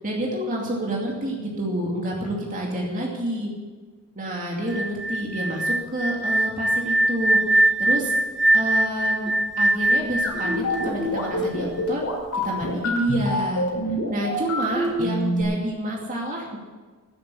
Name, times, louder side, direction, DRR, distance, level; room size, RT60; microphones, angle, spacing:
voice 1, 0.0-3.5 4.2-8.2 8.5-12.0 12.4-13.6 14.1-16.6, right 1 dB, 35° right, -1 dB, 2.5 m, -28 dB
sound 1, 4.7-11.6, right 1 dB, ahead, 0.6 m, -22 dB
sound 2, 10.2-15.4, left 1 dB, 75° left, 4.8 m, -26 dB
12.5 x 11.0 x 8.4 m, 1.4 s
head